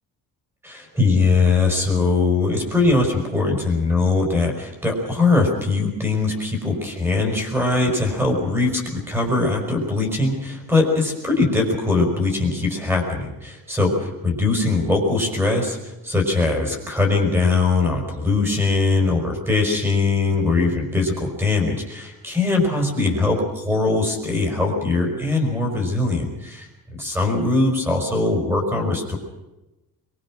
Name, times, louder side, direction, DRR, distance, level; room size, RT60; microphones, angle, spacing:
voice 1, 0.6-29.2, left 3 dB, 5° right, 3 dB, 5.1 m, -21 dB
23.0 x 23.0 x 6.2 m, 0.99 s
cardioid pair, 175°, 35 cm